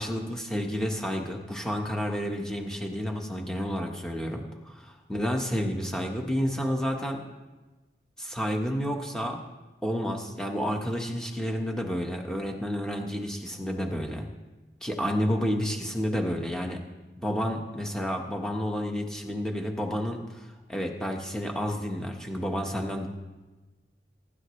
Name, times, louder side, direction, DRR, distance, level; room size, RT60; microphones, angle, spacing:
voice 1, 0.0-7.2 8.2-9.4 9.8-14.3 14.8-16.8 17.2-23.1, equal, 5° left, 1 dB, 1.4 m, -30 dB
23.0 x 11.5 x 3.3 m, 1.2 s
head